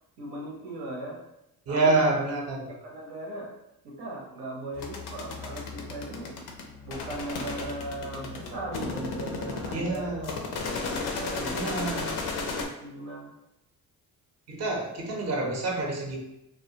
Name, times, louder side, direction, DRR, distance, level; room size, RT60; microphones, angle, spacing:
voice 1, 0.2-1.2 1.7-2.1 2.7-3.5 3.8-6.3 6.8-10.3 10.5-13.3, right 1 dB, 90° right, -2 dB, 0.8 m, -38 dB
voice 2, 1.7-2.8 9.7-10.3 11.5-12.2 14.5-16.2, right 2 dB, 45° right, 0 dB, 0.6 m, -27 dB
sound 1, 4.7-12.6, left 4 dB, 85° left, 0.5 m, -35 dB
2.3 x 2.1 x 2.7 m, 0.87 s
cardioid pair, 75°, 37 cm